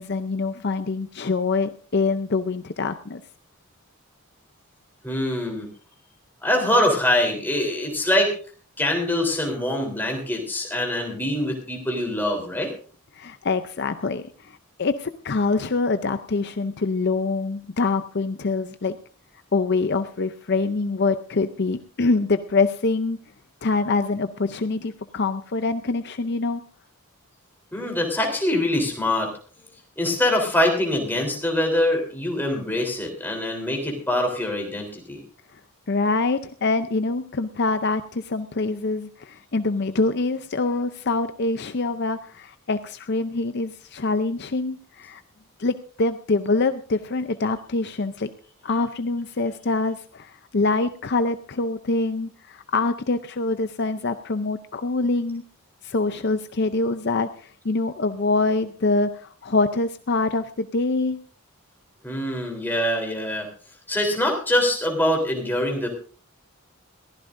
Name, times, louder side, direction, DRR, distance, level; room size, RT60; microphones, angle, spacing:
voice 1, 0.0-3.2 13.1-19.0 19.5-23.2 23.6-26.6 35.5-35.6 35.9-45.2 45.6-48.3 48.6-55.4 55.8-61.2, left 3 dB, 50° left, 10 dB, 0.6 m, -25 dB
voice 2, 5.0-5.7 6.4-8.3 8.8-12.7 27.7-29.3 30.0-35.2 62.0-63.5 63.9-65.9, left 1 dB, 10° left, 1 dB, 3.5 m, -24 dB
22.0 x 15.0 x 2.6 m, 0.41 s
head